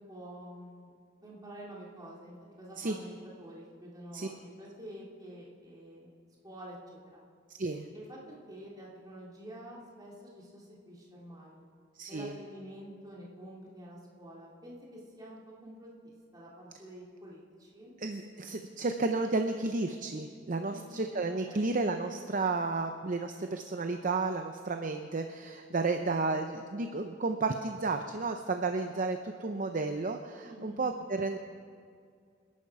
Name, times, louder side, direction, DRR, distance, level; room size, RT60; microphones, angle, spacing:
voice 1, 0.1-0.9 1.2-6.1 6.4-6.8 7.1-7.2 7.9-8.2 8.5-11.7 12.1-17.9 20.7-21.2 21.5-21.8 30.4-30.8, equal, 20° right, -5 dB, 3.0 m, -48 dB
voice 2, 7.5-7.9 12.0-12.3 18.0-31.4, right 3 dB, 45° right, 6 dB, 0.7 m, -32 dB
26.5 x 11.0 x 4.8 m, 2.2 s
head